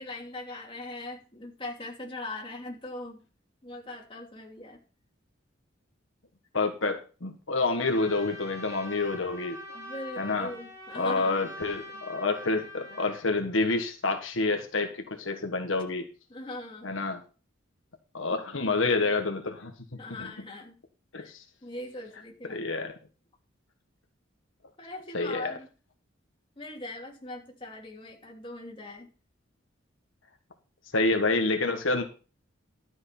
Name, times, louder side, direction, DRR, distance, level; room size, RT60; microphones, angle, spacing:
voice 1, 0.0-3.2 3.6-4.8 9.7-11.4 16.3-16.9 20.0-20.8 21.2-21.3 21.6-22.6 24.8-25.7 26.6-29.1, left 2 dB, 25° left, -1 dB, 2.9 m, -40 dB
voice 2, 6.5-9.6 10.2-10.5 10.9-16.0 16.8-17.2 18.1-19.7 20.2-20.3 21.1-21.4 22.5-22.9 25.1-25.5 30.9-32.0, left 3 dB, 80° left, 4 dB, 1.5 m, -28 dB
Trumpet, 7.8-13.2, left 1 dB, 15° right, 4.0 m, -43 dB
12.5 x 6.3 x 6.0 m, 0.36 s
head